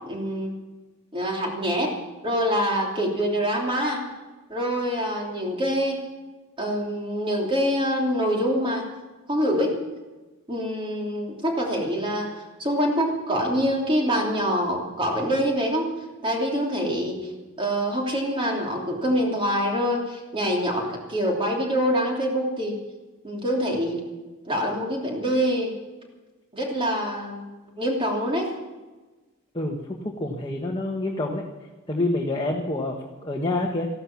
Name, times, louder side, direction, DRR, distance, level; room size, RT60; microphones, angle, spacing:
voice 1, 0.1-0.6 1.1-1.9 2.2-4.0 4.5-6.0 6.6-8.8 9.3-9.8 10.5-12.3 12.6-15.9 16.2-17.3 17.6-22.8 23.2-24.0 24.4-25.7 26.5-27.5 27.8-28.5, equal, 25° right, 0 dB, 3.1 m, -25 dB
voice 2, 30.0-31.4 31.9-33.9, left 2 dB, 25° left, -1 dB, 1.4 m, -27 dB
15.0 x 12.0 x 7.2 m, 1.2 s
head